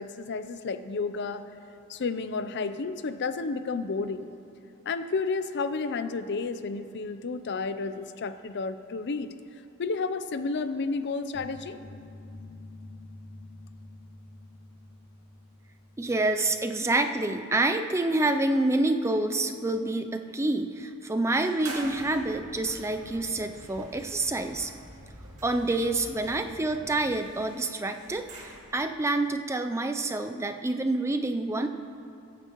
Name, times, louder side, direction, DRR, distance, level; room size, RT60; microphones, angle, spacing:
voice 1, 0.0-1.4 1.9-4.3 4.9-9.3 9.8-11.8, left 4 dB, 50° left, 11 dB, 0.5 m, -31 dB
sound 1, 11.3-16.3, left 2 dB, 65° left, 2.0 m, -47 dB
voice 2, 16.0-24.7 25.4-31.7, right 2 dB, 15° right, 7 dB, 0.4 m, -27 dB
sound 2, 21.4-28.9, right 2 dB, 70° right, 2.1 m, -47 dB
sound 3, 21.8-27.2, equal, 35° right, 1.9 m, -49 dB
22.0 x 9.2 x 3.0 m, 2.7 s
head